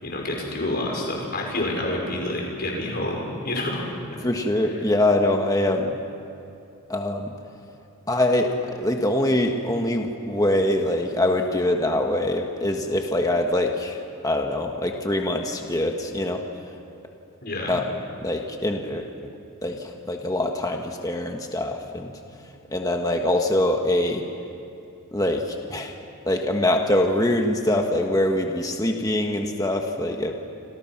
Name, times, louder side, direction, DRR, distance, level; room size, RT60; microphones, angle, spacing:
voice 1, 0.0-3.8 17.4-17.8, left 1 dB, 45° left, 0 dB, 5.5 m, -28 dB
voice 2, 4.2-6.0 6.9-7.3 8.1-14.0 14.2-16.4 17.7-17.8 18.2-19.3 19.6-22.1 22.7-24.2 25.1-25.9 26.3-30.3, left 1 dB, 15° left, 3 dB, 1.5 m, -24 dB
28.0 x 27.5 x 6.0 m, 2.7 s
head